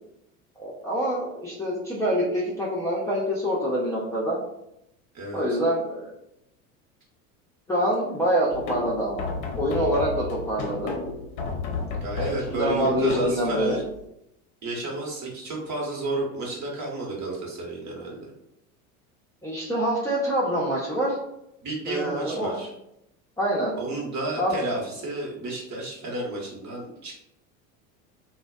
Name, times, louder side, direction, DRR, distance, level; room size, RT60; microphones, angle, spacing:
voice 1, 0.6-4.4 5.3-6.1 7.7-9.3 9.5-11.0 12.5-13.8 19.4-21.2 21.9-22.6 23.4-23.7 24.4-24.5, equal, 5° left, -7 dB, 0.5 m, -25 dB
sound 1, 8.5-14.1, left 4 dB, 45° left, 0.6 m, -33 dB
voice 2, 12.0-13.8 14.6-18.3 21.6-22.7 23.8-27.1, right 2 dB, 40° right, -3 dB, 1.1 m, -31 dB
2.4 x 2.2 x 2.3 m, 0.81 s
hypercardioid pair, 85°, 42 cm